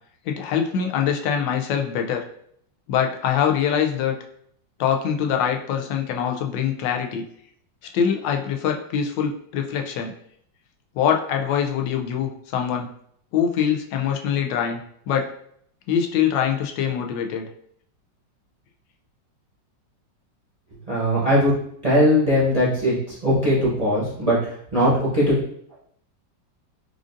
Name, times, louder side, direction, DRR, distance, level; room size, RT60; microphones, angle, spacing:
voice 1, 0.3-2.2 2.9-4.1 4.8-7.2 7.9-10.1 10.9-12.9 13.3-15.3 15.9-17.5, left 8 dB, 90° left, 3 dB, 1.3 m, -23 dB
voice 2, 20.9-21.5 21.8-25.3, equal, 30° right, -7 dB, 0.7 m, -20 dB
4.8 x 2.5 x 2.5 m, 0.67 s
omnidirectional pair, 1.9 m